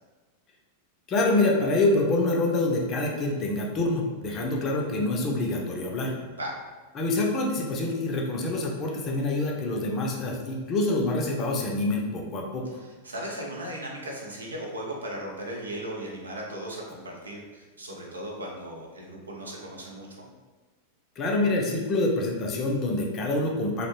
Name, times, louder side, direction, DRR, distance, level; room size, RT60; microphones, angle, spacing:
voice 1, 1.1-6.2 7.0-12.6 21.2-23.9, left 2 dB, 30° left, -1 dB, 0.5 m, -26 dB
voice 2, 12.7-20.2, right 1 dB, 75° right, -1 dB, 0.5 m, -37 dB
2.4 x 2.0 x 3.0 m, 1.3 s
figure-of-eight pair, 90°, 0 cm